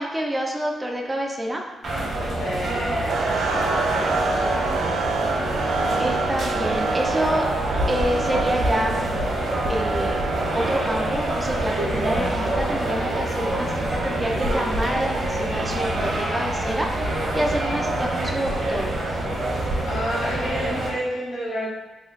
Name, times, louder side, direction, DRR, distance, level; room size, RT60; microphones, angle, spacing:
voice 1, 0.0-1.6 6.0-7.5 7.9-9.0 9.7-10.2 10.5-18.9, right 1 dB, 15° right, 0 dB, 0.4 m, -27 dB
sound 1, 1.8-20.9, right 1 dB, 55° right, 1.0 m, -26 dB
voice 2, 2.4-4.5 19.8-21.7, equal, 85° left, -9 dB, 1.3 m, -30 dB
sound 2, 3.1-17.2, right 3 dB, 90° right, 0.4 m, -29 dB
3.0 x 2.3 x 3.9 m, 1.2 s
cardioid pair, 120°, 0 cm